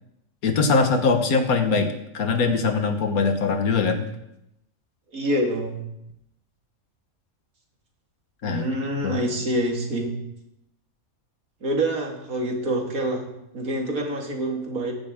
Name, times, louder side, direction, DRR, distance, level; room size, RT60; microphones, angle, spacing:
voice 1, 0.4-4.1 8.4-8.7 9.0-9.2, left 4 dB, 85° left, 7 dB, 1.7 m, -22 dB
voice 2, 5.1-5.8 8.4-10.1 11.6-13.3 13.5-14.9, right 1 dB, 75° right, 1 dB, 2.4 m, -26 dB
14.5 x 11.0 x 3.7 m, 0.82 s
omnidirectional pair, 1.5 m